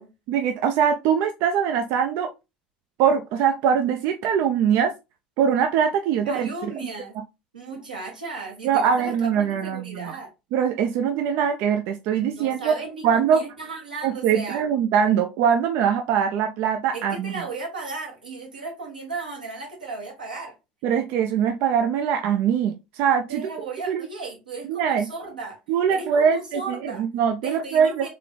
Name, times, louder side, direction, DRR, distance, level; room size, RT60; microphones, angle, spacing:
voice 1, 0.3-2.3 3.0-4.9 5.4-6.5 8.6-10.2 10.5-12.7 13.0-13.4 14.0-17.3 20.8-23.4 23.9-24.1 24.7-25.1 25.7-28.1, right 7 dB, 55° right, 0.5 m, -22 dB
voice 2, 6.2-7.1 7.5-10.3 12.3-14.6 16.9-20.5 23.3-25.6 25.9-27.0 27.4-28.1, right 3 dB, 85° right, 1.7 m, -35 dB
3.8 x 3.6 x 3.3 m
figure-of-eight pair, 70°, 4 cm